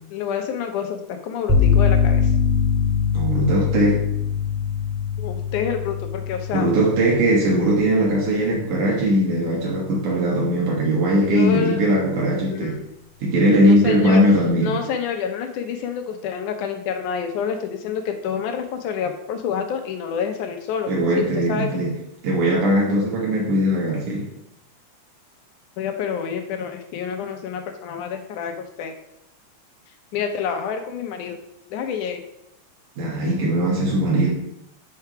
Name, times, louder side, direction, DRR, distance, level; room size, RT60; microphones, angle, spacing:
voice 1, 0.1-2.3 5.2-6.7 11.3-11.8 12.5-12.8 13.6-14.2 14.6-21.7 25.8-28.9 30.1-31.4 31.7-32.2, left 7 dB, 80° left, 5 dB, 2.3 m, -28 dB
sound 1, 1.5-9.2, left 6 dB, 5° right, 1.4 m, -23 dB
voice 2, 3.1-4.1 6.5-12.8 13.2-14.8 20.9-22.0 22.2-24.3 33.0-34.3, right 1 dB, 75° right, -3 dB, 2.9 m, -20 dB
7.7 x 4.8 x 5.7 m, 0.79 s
omnidirectional pair, 3.6 m